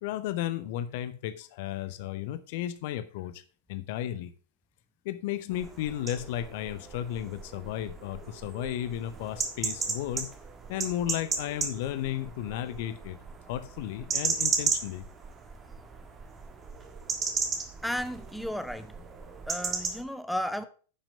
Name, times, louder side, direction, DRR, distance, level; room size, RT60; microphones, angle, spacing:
voice 1, 0.0-3.4 3.7-4.3 5.0-10.3 10.7-13.2 13.5-15.0, left 12 dB, 50° left, 14 dB, 0.7 m, -34 dB
sound 1, 5.5-20.0, right 5 dB, 20° right, 1.6 m, -35 dB
voice 2, 17.8-19.0 19.5-20.6, equal, ahead, 11 dB, 0.8 m, -33 dB
9.8 x 6.0 x 5.1 m, 0.38 s
figure-of-eight pair, 90°, 0 cm